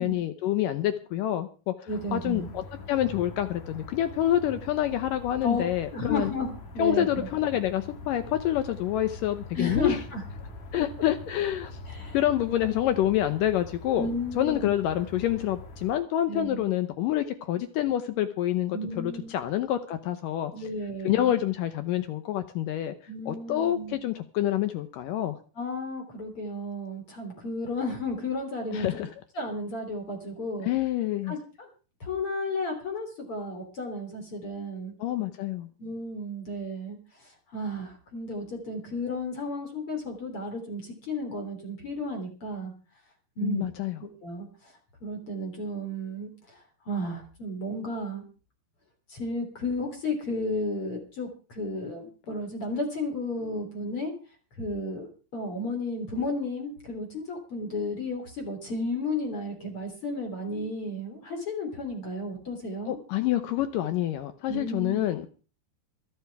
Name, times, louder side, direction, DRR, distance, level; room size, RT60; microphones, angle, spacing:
voice 1, 0.0-6.3 6.8-10.0 10.7-11.7 12.1-14.1 14.4-20.5 21.0-22.9 23.3-25.4 28.7-29.1 30.6-31.4 35.0-35.7 43.4-44.0 62.9-65.3, left 12 dB, 85° left, 10 dB, 1.9 m, -27 dB
sound 1, 1.9-15.9, left 2 dB, 50° left, 2.6 m, -43 dB
voice 2, 1.9-2.5 5.4-5.6 5.9-7.3 9.5-10.2 11.9-12.2 12.8-12.9 14.0-14.7 16.3-16.6 18.7-19.3 20.5-21.3 23.1-23.9 25.6-29.1 29.4-30.7 31.3-31.7 32.0-34.9 35.8-37.0 37.5-42.7 43.4-43.7 44.0-44.5 45.0-46.6 46.9-48.2 49.1-54.1 54.6-63.0 64.5-65.1, left 1 dB, 35° left, 3 dB, 3.6 m, -33 dB
26.5 x 9.5 x 3.5 m, 0.36 s
omnidirectional pair, 4.9 m